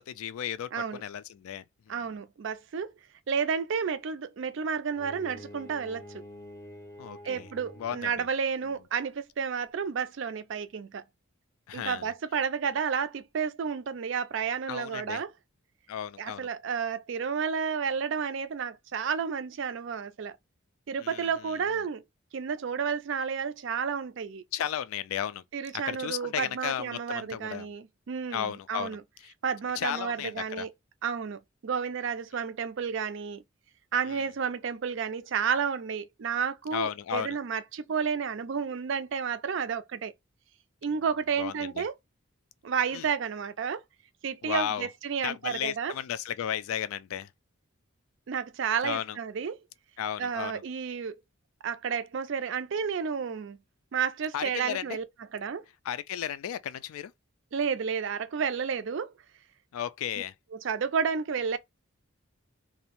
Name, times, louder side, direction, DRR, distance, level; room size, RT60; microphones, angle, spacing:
voice 1, 0.0-2.1 7.0-7.5 7.8-8.3 11.7-12.1 14.7-15.2 15.9-16.5 21.0-21.3 24.5-25.4 25.7-27.7 28.3-29.0 29.2-29.3 29.8-30.7 34.1-34.2 36.7-37.4 41.4-41.8 42.9-43.1 44.4-44.9 45.2-47.3 48.8-49.2 50.0-50.6 54.3-55.0 55.9-57.1 59.7-60.3, left 9 dB, 85° left, 0.3 m, -34 dB
voice 2, 1.9-2.9 3.3-6.1 7.2-11.0 11.7-15.3 16.2-20.4 20.9-22.0 22.3-24.4 25.5-29.0 29.4-30.7 31.0-33.4 33.9-40.1 40.8-41.9 42.6-43.8 44.2-45.9 48.3-49.6 50.2-51.2 51.6-53.6 53.9-55.0 55.3-55.6 57.5-59.1 60.5-61.6, right 6 dB, 60° right, 0.4 m, -31 dB
Bowed string instrument, 4.9-8.2, left 1 dB, 15° left, 0.4 m, -47 dB
2.6 x 2.0 x 2.8 m
head